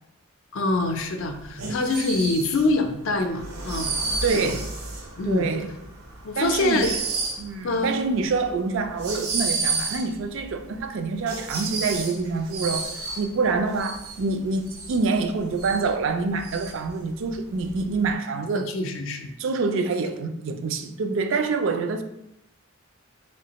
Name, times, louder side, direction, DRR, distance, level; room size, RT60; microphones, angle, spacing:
voice 1, 0.5-3.9 4.4-4.5 5.2-5.5 6.2-6.9 7.6-8.0 18.5-19.3, left 2 dB, 60° left, 0.4 m, -25 dB
sound 1, 0.9-18.1, right 3 dB, 85° right, 0.7 m, -32 dB
voice 2, 4.2-4.7 5.2-5.7 6.4-7.0 7.4-12.9 13.2-18.7 19.4-22.0, right 4 dB, 60° right, 0.3 m, -26 dB
3.4 x 3.1 x 2.9 m
head